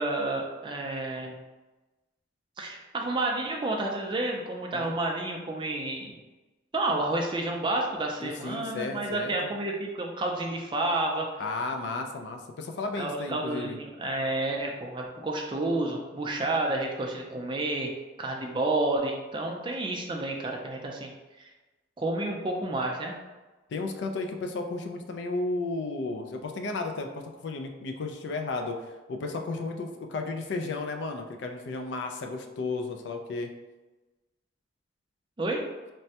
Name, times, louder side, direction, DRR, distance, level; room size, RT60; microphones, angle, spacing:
voice 1, 0.0-1.4 2.6-6.2 6.7-11.3 13.0-17.9 18.2-21.5 22.0-23.1 35.4-35.6, right 2 dB, 25° right, 0 dB, 0.3 m, -30 dB
voice 2, 8.2-9.5 11.4-13.8 23.7-28.8 29.1-33.5, left 3 dB, 65° left, 4 dB, 0.3 m, -33 dB
3.2 x 2.1 x 2.7 m, 1.1 s
head